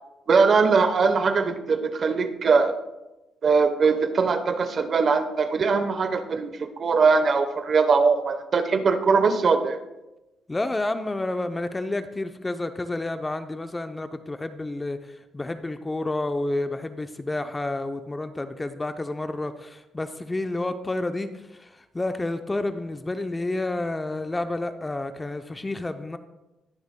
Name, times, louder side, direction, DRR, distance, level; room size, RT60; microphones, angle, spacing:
voice 1, 0.3-2.8 3.4-9.8, right 4 dB, 50° right, 9 dB, 0.9 m, -21 dB
voice 2, 10.5-15.0 15.3-21.3 21.6-21.7 21.9-26.2, left 2 dB, 20° left, 9 dB, 0.6 m, -30 dB
20.0 x 6.9 x 2.2 m, 1.0 s
cardioid pair, 90°, 0 cm